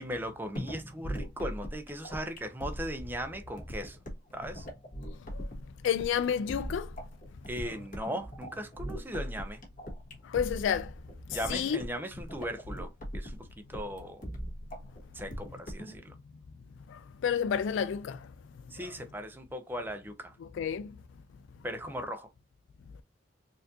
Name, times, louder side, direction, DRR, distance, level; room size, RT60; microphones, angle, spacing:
voice 1, 0.0-4.0 4.3-4.7 7.5-9.6 11.3-14.2 15.1-16.1 18.7-20.4 21.6-22.3, equal, 10° right, 0.5 m, -38 dB
sound 1, 0.6-16.0, equal, 45° left, 1.4 m, -40 dB
voice 2, 5.8-6.9 10.2-10.9 11.3-11.8 16.9-18.3 18.8-18.9 20.5-21.0, left 8 dB, 65° left, 0.3 m, -30 dB
4.2 x 2.5 x 2.7 m
head